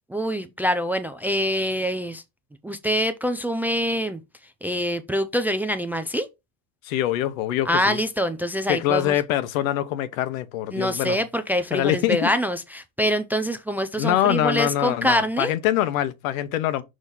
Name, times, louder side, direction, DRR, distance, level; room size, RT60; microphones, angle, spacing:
voice 1, 0.1-2.2 2.6-4.2 4.6-6.3 7.7-9.2 10.7-15.5, equal, 5° right, 0.4 m, -25 dB
voice 2, 6.8-8.0 8.7-11.2 11.7-12.3 14.0-16.8, left 13 dB, 80° left, 1.1 m, -24 dB
6.4 x 3.2 x 5.4 m
supercardioid pair, 130°, 40 cm